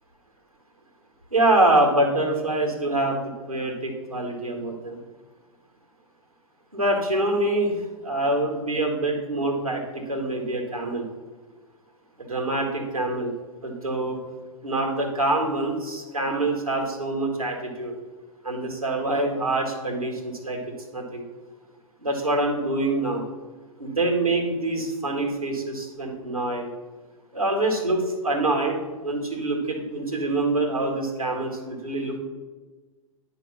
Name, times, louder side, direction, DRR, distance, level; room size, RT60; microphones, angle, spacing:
voice 1, 1.3-5.0 6.7-7.8 8.0-9.8 10.1-11.1 12.2-13.3 13.6-14.2 14.6-17.9 18.4-20.6 20.9-21.2 22.0-23.2 23.8-26.7 27.3-32.2, right 2 dB, 90° right, 1 dB, 1.8 m, -25 dB
10.0 x 3.4 x 5.9 m, 1.3 s
figure-of-eight pair, 105°, 18 cm